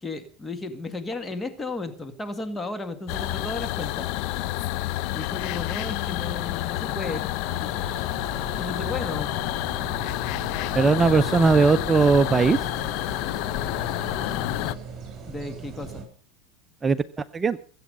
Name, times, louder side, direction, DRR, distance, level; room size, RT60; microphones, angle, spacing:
voice 1, 0.0-4.1 5.1-7.3 8.6-9.3 15.3-16.1, left 2 dB, 15° left, 9 dB, 2.0 m, -34 dB
sound 1, 3.1-14.7, left 16 dB, 60° left, 0.8 m, -29 dB
sound 2, 7.5-16.0, right 5 dB, 35° right, 6.9 m, -39 dB
voice 2, 10.7-12.6 16.8-17.0 17.3-17.6, right 4 dB, 20° right, 13 dB, 0.6 m, -19 dB
22.5 x 8.5 x 5.4 m, 0.42 s
supercardioid pair, 105°, 0 cm